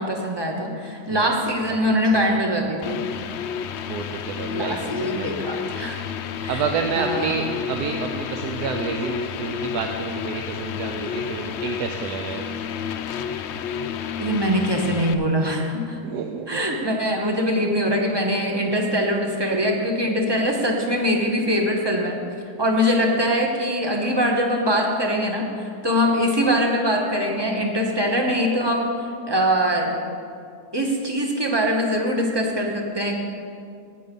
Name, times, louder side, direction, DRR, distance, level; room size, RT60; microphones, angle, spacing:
voice 1, 0.0-3.0 4.5-6.0 6.4-6.6 6.9-7.3 14.2-16.0 16.5-22.2 22.6-28.9 29.3-30.0 30.7-33.2, equal, 15° right, 1 dB, 1.2 m, -22 dB
voice 2, 1.9-2.4 3.9-5.3 6.5-12.5 16.0-16.6 26.1-26.2, right 5 dB, 75° right, 4 dB, 1.2 m, -29 dB
sound 1, 2.8-15.1, left 7 dB, 75° left, 0.6 m, -31 dB
16.5 x 6.6 x 5.3 m, 2.4 s
omnidirectional pair, 1.7 m